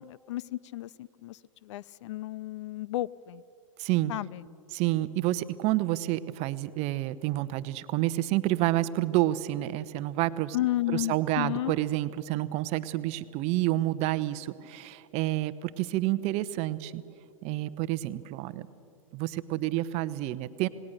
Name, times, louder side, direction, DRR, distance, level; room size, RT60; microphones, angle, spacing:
voice 1, 0.0-3.4 4.1-4.5 10.5-11.7, left 15 dB, 60° left, 22 dB, 0.5 m, -33 dB
voice 2, 3.8-4.1 4.7-10.6 10.9-17.0 17.4-18.7 19.1-20.7, right 16 dB, 40° right, 14 dB, 0.8 m, -29 dB
27.5 x 19.0 x 6.6 m, 2.6 s
hypercardioid pair, 105°, 17 cm